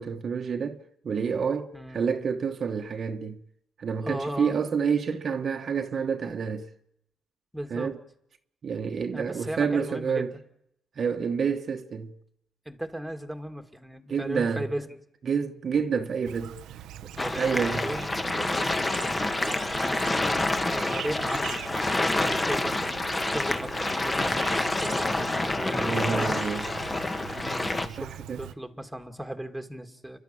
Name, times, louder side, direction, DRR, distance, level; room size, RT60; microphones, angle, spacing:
voice 1, 0.0-3.4 3.8-6.7 7.7-8.0 8.6-10.3 11.0-12.1 14.1-14.7 15.3-17.1 17.4-17.9 25.8-26.7 28.0-28.5, right 6 dB, 50° right, 1.2 m, -29 dB
voice 2, 1.7-2.1 4.0-4.6 7.5-7.9 9.1-10.2 12.7-15.0 17.2-18.8 19.1-20.2 20.7-21.6 22.1-26.4 27.3-30.2, right 1 dB, 5° right, 2.1 m, -37 dB
Chirp tweet, 16.2-28.5, right 11 dB, 85° right, 0.8 m, -42 dB
sound 1, 17.2-27.9, left 2 dB, 20° left, 1.6 m, -28 dB
29.5 x 12.0 x 8.7 m
cardioid pair, 90°, 0 cm